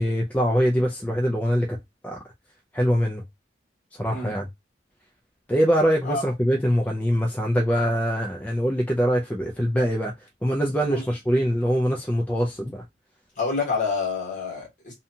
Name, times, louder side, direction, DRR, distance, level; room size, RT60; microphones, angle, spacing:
voice 1, 0.0-1.8 2.0-2.2 2.7-3.2 4.0-4.5 5.5-10.1 10.4-12.8, equal, 10° left, 0.3 m, -23 dB
voice 2, 13.4-14.9, left 4 dB, 45° left, 1.3 m, -27 dB
2.7 x 2.2 x 2.6 m
head